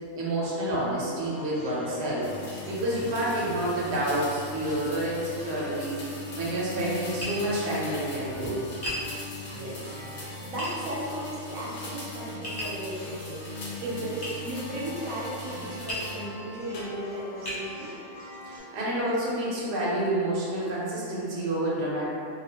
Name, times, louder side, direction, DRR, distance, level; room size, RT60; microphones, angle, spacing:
voice 1, 0.1-2.3 2.7-8.6 18.5-22.1, right 1 dB, 60° right, -6 dB, 0.9 m, -29 dB
sound 1, 1.2-18.6, left 2 dB, 85° left, 1.1 m, -42 dB
sound 2, 2.2-16.3 16.7-17.3, left 1 dB, 60° left, 0.8 m, -42 dB
Tap, 7.2-7.4 8.8-9.1 10.6-10.7 12.4-12.8 14.2-14.4 15.9-16.1 16.8-16.9 17.5-17.6, equal, 35° left, 0.3 m, -33 dB
voice 2, 9.5-10.0 10.4-13.4 13.8-17.9, right 1 dB, 90° right, -5 dB, 1.0 m, -35 dB
2.4 x 2.3 x 2.8 m, 2.5 s
omnidirectional pair, 1.4 m